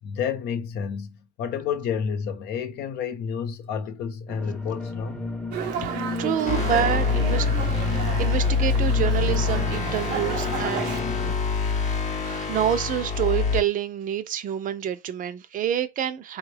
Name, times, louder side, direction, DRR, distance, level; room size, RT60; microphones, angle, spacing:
voice 1, 0.0-5.3, left 7 dB, 75° left, 0.8 m, -30 dB
sound 1, 4.3-11.3, left 2 dB, 5° left, 0.7 m, -35 dB
Dog, 5.5-11.0, right 7 dB, 85° right, 0.7 m, -33 dB
voice 2, 6.2-7.5 7.9-11.5 12.2-16.4, right 10 dB, 50° right, 0.5 m, -27 dB
sound 2, 6.5-13.6, left 5 dB, 45° left, 0.7 m, -25 dB
3.4 x 2.3 x 3.2 m
cardioid pair, 110°, 17 cm